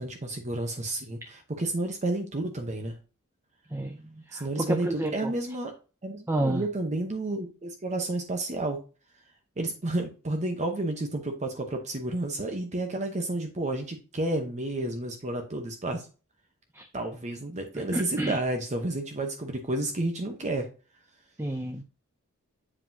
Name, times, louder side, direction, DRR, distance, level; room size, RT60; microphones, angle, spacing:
voice 1, 0.0-3.0 4.3-5.7 6.0-8.8 9.6-16.1 16.9-20.7, right 2 dB, 30° right, 4 dB, 0.9 m, -31 dB
voice 2, 3.7-5.3 6.3-6.7 16.7-16.9 17.9-18.4 21.4-21.8, right 1 dB, 10° right, 5 dB, 0.5 m, -30 dB
7.7 x 4.9 x 2.7 m, 0.34 s
head